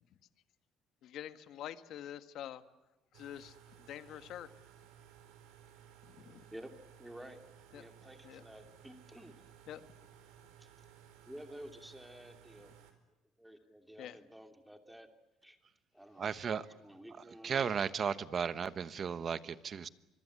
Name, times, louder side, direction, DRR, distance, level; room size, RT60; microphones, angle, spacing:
voice 1, 1.0-2.6 3.1-3.5 3.9-4.5 6.2-6.4 7.7-7.8 8.2-8.4 9.7-9.8 14.0-14.2, left 11 dB, 60° left, 1.6 m, -46 dB
sound 1, 3.1-12.9, right 9 dB, 85° right, 4.2 m, -59 dB
voice 2, 7.0-7.4 7.7-9.4 10.6-10.7 11.3-12.7 13.4-15.1 15.4-15.6 15.9-16.3 16.6-17.7, equal, 5° right, 2.8 m, -52 dB
voice 3, 16.2-16.7 17.4-19.9, right 7 dB, 35° right, 1.1 m, -35 dB
25.5 x 22.5 x 9.7 m
cardioid pair, 130°, 0 cm